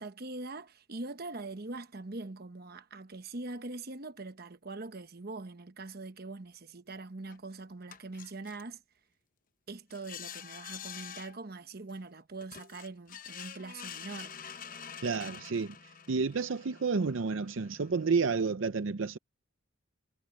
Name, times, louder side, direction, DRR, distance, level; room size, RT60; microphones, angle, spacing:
voice 1, 0.0-8.8 9.7-14.3, right 3 dB, 50° right, 1.1 m, -43 dB
sound 1, 7.3-7.4 7.9-8.6 9.9-11.4 11.9-12.0 12.4-18.6, left 8 dB, 40° left, 0.9 m, -47 dB
voice 2, 15.0-15.8 16.1-19.2, right 4 dB, 70° right, 0.6 m, -30 dB
head